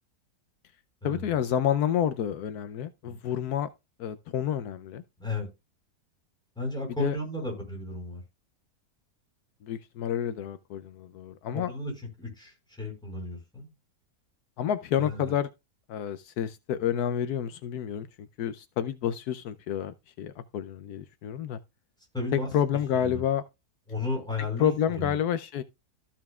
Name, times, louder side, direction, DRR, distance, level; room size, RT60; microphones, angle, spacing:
voice 1, 1.0-3.7 4.0-5.0 7.0-7.2 9.6-11.7 14.6-15.5 15.9-18.1 18.4-21.6 22.3-23.4 24.6-25.6, left 9 dB, 80° left, 1.1 m, -29 dB
voice 2, 6.6-8.2 11.5-11.9 12.2-13.7 15.0-15.3 22.1-22.5 22.9-23.2 23.9-25.2, left 2 dB, 5° left, 4.9 m, -34 dB
14.0 x 5.8 x 2.4 m
omnidirectional pair, 1.6 m